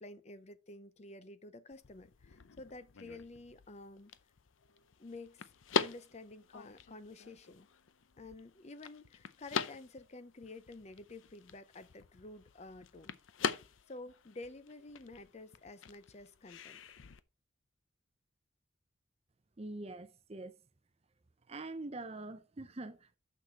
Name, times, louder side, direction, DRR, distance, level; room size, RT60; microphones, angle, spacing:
voice 1, 0.0-4.1 5.0-7.7 8.2-13.2 13.9-16.8, left 2 dB, 35° left, 0.6 m, -50 dB
sound 1, 1.7-17.2, left 6 dB, 80° left, 0.6 m, -43 dB
voice 2, 19.6-20.5 21.5-23.2, right 2 dB, 30° right, 0.6 m, -44 dB
6.6 x 6.4 x 4.5 m
head